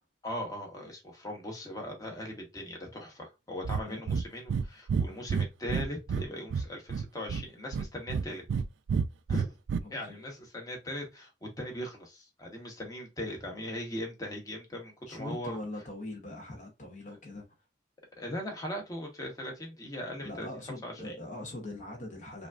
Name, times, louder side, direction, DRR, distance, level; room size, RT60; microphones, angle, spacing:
voice 1, 0.2-8.4 9.3-9.5 9.9-15.6 18.2-20.5 20.8-21.1, left 1 dB, 20° left, 1.0 m, -39 dB
Breathing, 3.6-3.8 4.1-4.2 4.5-4.6 4.9-6.2 6.5-7.4 7.7-8.6 8.9-9.8, right 6 dB, 85° right, 0.3 m, -29 dB
voice 2, 4.9-5.2 9.8-10.2 15.1-17.4 20.2-22.5, left 1 dB, 45° left, 0.9 m, -42 dB
5.0 x 2.5 x 2.4 m
head